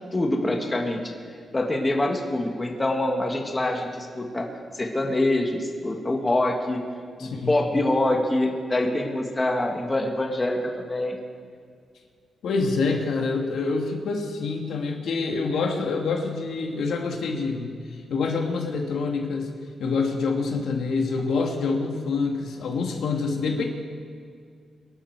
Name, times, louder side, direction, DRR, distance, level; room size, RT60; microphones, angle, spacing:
voice 1, 0.1-1.0 1.5-4.5 4.7-6.8 7.2-11.2, left 1 dB, 15° left, 1 dB, 1.6 m, -25 dB
voice 2, 7.2-7.5 12.4-17.8 18.1-19.5 19.8-23.6, left 4 dB, 80° left, 2 dB, 1.9 m, -26 dB
23.5 x 11.5 x 4.7 m, 2.2 s
wide cardioid pair, 165°, 0 cm